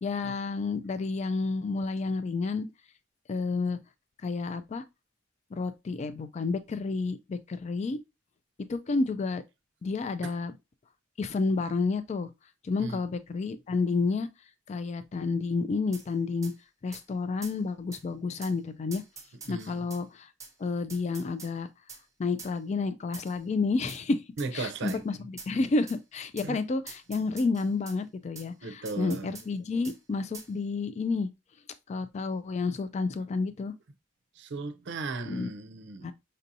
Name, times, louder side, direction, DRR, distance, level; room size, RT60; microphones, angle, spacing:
voice 1, 0.0-2.7 3.3-3.8 4.2-4.8 5.5-8.0 8.7-9.4 9.8-10.5 11.2-12.3 12.6-14.3 14.7-16.5 16.8-19.0 19.5-20.3 20.6-21.7 22.2-24.2 24.5-31.3 31.9-33.7 35.3-35.5 36.0-36.1, left 4 dB, 35° left, 0.3 m, -30 dB
sound 1, 15.9-16.1 16.4-16.5 16.9-17.0 17.4-17.6 17.9-18.0 18.4-18.6 18.9-20.0 20.4-20.5 20.9-21.5 21.9-22.0 22.4-22.5 23.1-23.4 23.9-24.0 24.4-24.5 24.9-25.0 25.4-25.5 25.9-26.0 26.4-26.5 26.9-28.0 28.3-28.5 28.8-29.5 29.8-30.0 30.3-30.5, right 5 dB, 15° right, 0.9 m, -46 dB
voice 2, 19.4-19.9 24.4-25.0 26.4-26.6 28.6-29.3 34.4-36.1, right 3 dB, 65° right, 0.5 m, -36 dB
5.2 x 2.7 x 2.6 m
head